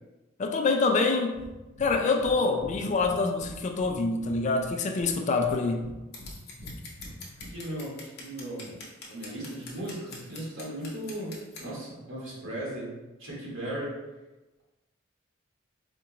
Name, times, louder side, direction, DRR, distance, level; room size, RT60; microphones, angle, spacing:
voice 1, 0.4-1.4 1.8-5.9, left 3 dB, 35° left, 0.3 m, -26 dB
Breathing, 1.3-1.5 1.8-2.3 2.6-5.1 5.4-6.3 6.6-7.5, equal, 90° right, 1.0 m, -45 dB
Scissors, 6.1-11.7, left 3 dB, 55° left, 0.8 m, -45 dB
voice 2, 7.5-8.8 9.1-14.0, right 1 dB, 70° right, 1.4 m, -37 dB
4.3 x 2.4 x 2.9 m
head